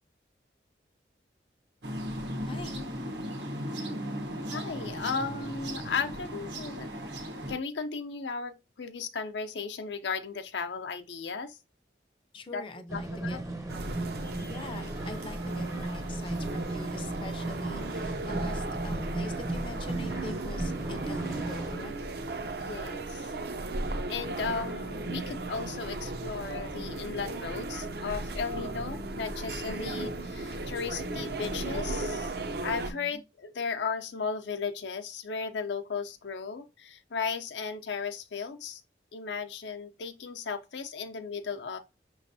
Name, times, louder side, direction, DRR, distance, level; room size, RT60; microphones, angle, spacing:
sound 1, 1.8-7.6, equal, 75° right, 1.0 m, -36 dB
voice 1, 2.4-2.9 12.3-13.4 14.4-21.9 32.9-33.2, left 2 dB, 30° left, 0.5 m, -43 dB
voice 2, 4.5-6.9 7.5-11.6 12.5-12.6 12.9-13.4 22.6-23.2 24.1-32.3 32.6-38.8 39.1-41.8, left 5 dB, 80° left, 0.6 m, -35 dB
sound 2, 12.9-21.8, right 2 dB, 20° right, 0.6 m, -36 dB
sound 3, 13.7-32.9, right 2 dB, 60° right, 0.6 m, -36 dB
5.9 x 3.1 x 2.7 m
head